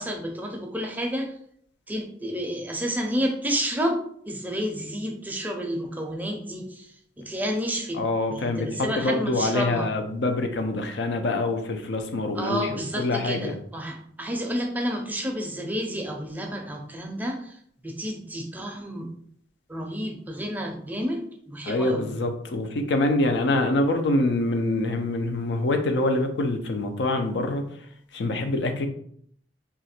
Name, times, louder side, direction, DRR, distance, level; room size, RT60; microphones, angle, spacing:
voice 1, 0.0-1.3 1.9-8.0 8.3-9.9 12.3-19.1 19.7-22.1, equal, 10° right, 2 dB, 0.5 m, -30 dB
voice 2, 7.9-13.5 21.6-27.6 28.1-28.9, left 2 dB, 80° left, 6 dB, 0.5 m, -25 dB
2.8 x 2.4 x 4.2 m, 0.65 s
head